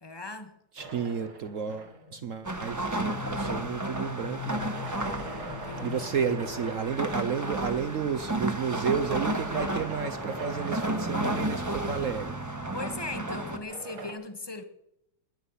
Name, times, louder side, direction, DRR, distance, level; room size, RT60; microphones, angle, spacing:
voice 1, 0.0-0.6 5.4-6.1 12.7-14.6, left 3 dB, 20° left, 0.7 m, -38 dB
voice 2, 0.7-4.6 5.8-12.4, right 7 dB, 65° right, 0.7 m, -32 dB
sound 1, 0.8-2.3 4.2-7.3 8.8-12.0 13.5-14.1, right 3 dB, 85° right, 3.1 m, -43 dB
sound 2, 1.7-7.2, left 10 dB, 50° left, 1.7 m, -43 dB
sound 3, 2.4-13.6, right 1 dB, 10° right, 0.9 m, -33 dB
21.0 x 9.8 x 5.6 m
omnidirectional pair, 2.2 m